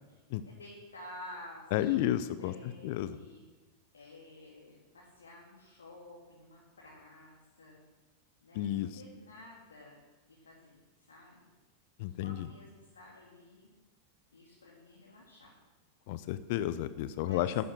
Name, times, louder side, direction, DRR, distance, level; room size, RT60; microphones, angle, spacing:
voice 1, 0.1-2.1 2.4-3.4 3.9-7.8 8.4-10.0 10.3-11.5 12.0-13.7 14.3-15.5 17.2-17.5, left 1 dB, 70° left, -4 dB, 2.6 m, -52 dB
voice 2, 1.7-2.5 2.8-3.2 8.6-8.9 12.0-12.5 16.1-17.6, left 13 dB, 50° left, 14 dB, 0.6 m, -31 dB
11.5 x 11.0 x 6.5 m, 1.2 s
figure-of-eight pair, 90°, 0 cm